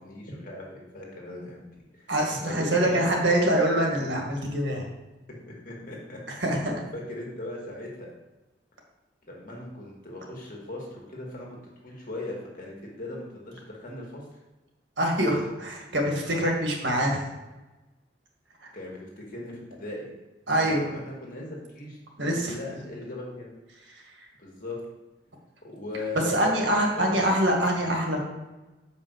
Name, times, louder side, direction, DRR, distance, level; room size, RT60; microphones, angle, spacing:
voice 1, 0.0-3.2 5.3-6.4 6.9-8.1 9.2-11.5 11.8-14.3 18.7-20.1 20.5-23.5 24.4-24.8 25.6-26.6 27.0-27.1, left 1 dB, 45° left, -2 dB, 2.1 m, -39 dB
voice 2, 2.1-4.9 6.3-6.8 15.0-17.3 18.6-18.7 20.5-20.9 22.2-22.5 26.3-28.2, right 1 dB, 80° right, 0 dB, 1.9 m, -25 dB
5.6 x 5.4 x 6.7 m, 1.1 s
head